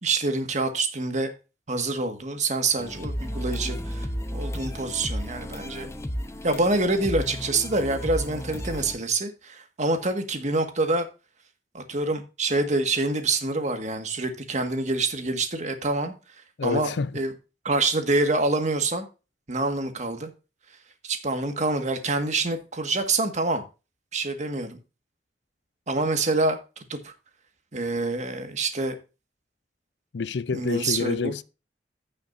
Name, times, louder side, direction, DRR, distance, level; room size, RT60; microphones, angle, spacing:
voice 1, 0.0-1.3 1.7-5.9 6.4-11.1 11.7-16.1 16.6-17.3 17.6-19.1 19.5-20.3 21.0-23.6 24.1-24.8 25.9-26.6 26.9-27.1 27.7-29.0 30.5-31.4, right 2 dB, 45° right, 1.8 m, -26 dB
sound 1, 2.8-8.9, equal, 15° left, 0.8 m, -33 dB
voice 2, 16.6-17.1 30.1-31.4, left 5 dB, 80° left, 0.5 m, -27 dB
15.5 x 6.5 x 2.6 m
head